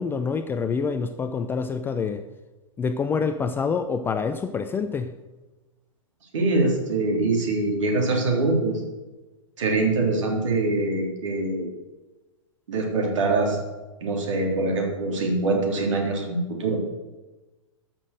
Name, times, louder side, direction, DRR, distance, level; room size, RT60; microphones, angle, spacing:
voice 1, 0.0-2.2 2.8-5.2, left 5 dB, 10° left, 9 dB, 0.5 m, -26 dB
voice 2, 6.3-8.8 9.6-11.7 12.7-13.6 14.0-16.8, right 2 dB, 60° right, 0 dB, 3.3 m, -24 dB
13.5 x 6.1 x 6.5 m, 1.2 s
figure-of-eight pair, 110°, 18 cm